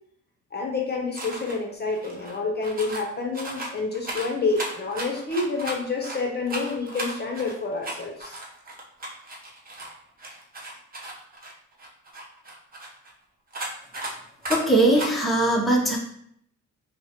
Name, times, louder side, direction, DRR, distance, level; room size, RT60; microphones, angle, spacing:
voice 1, 0.5-8.4, left 3 dB, 35° left, 1 dB, 0.8 m, -28 dB
sound 1, 1.1-1.6 1.9-3.1 3.3-6.2 6.4-9.9 10.2-13.1 13.5-14.1 14.4-14.6 14.9-15.1, right 1 dB, 30° right, 1.0 m, -35 dB
voice 2, 14.5-16.0, right 1 dB, ahead, -2 dB, 0.8 m, -20 dB
5.3 x 2.2 x 3.0 m, 0.68 s
cardioid pair, 90°, 30 cm